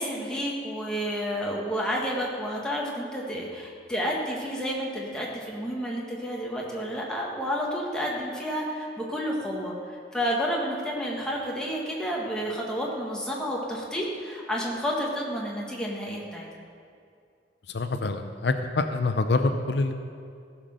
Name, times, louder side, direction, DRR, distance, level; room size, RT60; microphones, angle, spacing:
voice 1, 0.0-16.5, equal, 5° left, -3 dB, 1.7 m, -30 dB
voice 2, 17.7-19.9, left 3 dB, 70° left, 7 dB, 0.6 m, -26 dB
15.5 x 6.0 x 6.5 m, 2.4 s
head